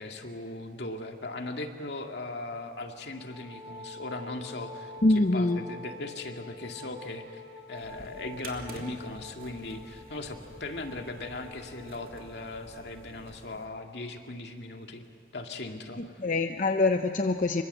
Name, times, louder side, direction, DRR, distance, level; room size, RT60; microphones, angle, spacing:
voice 1, 0.0-7.4 7.7-15.0 15.3-16.0, left 2 dB, 75° left, 3 dB, 2.2 m, -38 dB
Wind instrument woodwind instrument, 3.1-13.1, left 2 dB, ahead, 6.9 m, -47 dB
voice 2, 5.0-5.6 16.0-17.6, left 2 dB, 45° left, 6 dB, 0.7 m, -25 dB
sound 1, 7.7-13.6, right 2 dB, 55° right, 2.8 m, -49 dB
26.5 x 24.0 x 7.8 m, 2.1 s
head